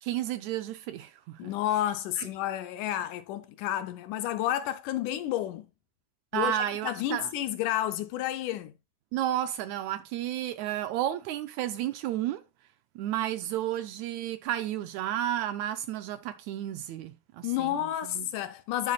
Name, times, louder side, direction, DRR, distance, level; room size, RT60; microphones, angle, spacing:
voice 1, 0.0-1.5 2.2-2.3 6.3-7.3 9.1-12.4 12.9-18.3, right 12 dB, 85° right, 1.6 m, -32 dB
voice 2, 1.4-5.7 6.3-6.5 6.8-8.7 17.4-18.9, left 12 dB, 80° left, 2.0 m, -30 dB
10.5 x 7.3 x 2.3 m
omnidirectional pair, 3.9 m